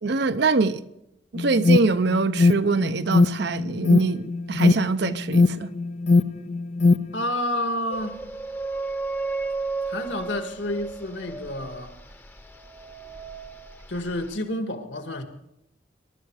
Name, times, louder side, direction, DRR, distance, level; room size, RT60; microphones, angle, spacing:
voice 1, 0.0-0.8 1.3-5.7, right 4 dB, 60° right, 0.7 m, -24 dB
Alarm, 1.4-7.2, left 3 dB, 35° left, 0.5 m, -21 dB
voice 2, 7.1-8.2 9.9-11.9 13.9-15.2, left 1 dB, 70° left, 2.0 m, -29 dB
sound 1, 7.9-14.4, right 3 dB, 10° left, 0.8 m, -34 dB
22.5 x 12.0 x 4.8 m
head